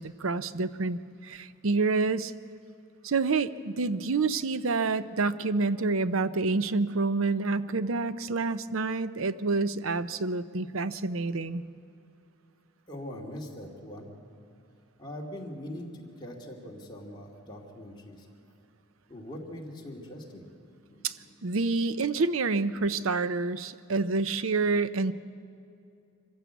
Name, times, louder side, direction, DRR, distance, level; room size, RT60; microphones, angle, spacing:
voice 1, 0.0-2.3 3.0-11.6 21.0-21.2 21.4-25.1, right 3 dB, 75° right, 14 dB, 0.7 m, -28 dB
voice 2, 12.9-14.1 15.0-18.3 19.1-21.4, left 1 dB, 20° left, -2 dB, 2.6 m, -42 dB
24.5 x 15.0 x 8.3 m, 2.5 s
head